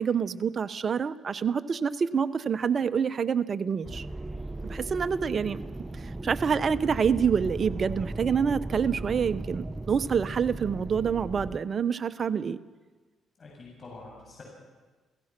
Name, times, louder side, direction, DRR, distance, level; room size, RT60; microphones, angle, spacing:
voice 1, 0.0-4.1 4.7-5.6 6.2-12.6, right 6 dB, 45° right, 12 dB, 0.9 m, -27 dB
sound 1, 3.8-11.6, right 2 dB, 15° right, 0.9 m, -37 dB
voice 2, 13.4-14.4, left 3 dB, 45° left, -2 dB, 7.5 m, -46 dB
29.5 x 16.5 x 6.0 m, 1.3 s
cardioid pair, 80°, 0 cm